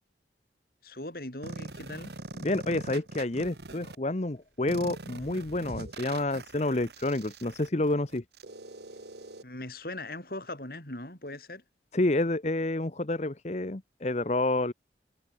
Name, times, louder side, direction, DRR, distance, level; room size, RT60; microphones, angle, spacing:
voice 1, 0.8-2.2 9.4-11.6, left 1 dB, 55° left, 5.3 m, -40 dB
sound 1, 1.4-3.9 4.7-9.4, right 2 dB, 70° right, 2.2 m, -42 dB
voice 2, 2.3-8.2 11.9-14.7, left 2 dB, 40° left, 1.0 m, -29 dB
head